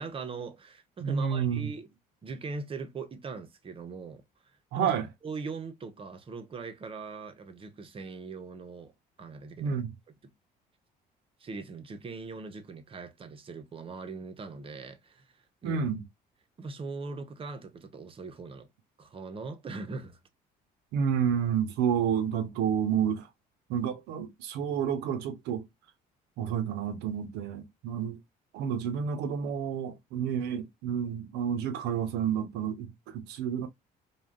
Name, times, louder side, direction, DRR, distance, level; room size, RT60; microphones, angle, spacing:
voice 1, 0.0-1.9 2.2-4.2 4.7-4.9 5.2-8.9 9.2-9.8 10.2-10.3 11.4-15.8 16.6-18.7 19.0-20.2, right 4 dB, 30° right, 0.7 m, -40 dB
voice 2, 1.0-1.7 4.7-5.1 9.6-9.9 15.6-16.0 20.9-23.3 23.7-25.6 26.4-28.2 28.5-33.7, right 8 dB, 85° right, 0.7 m, -30 dB
3.4 x 2.2 x 2.4 m
cardioid pair, 110°, 17 cm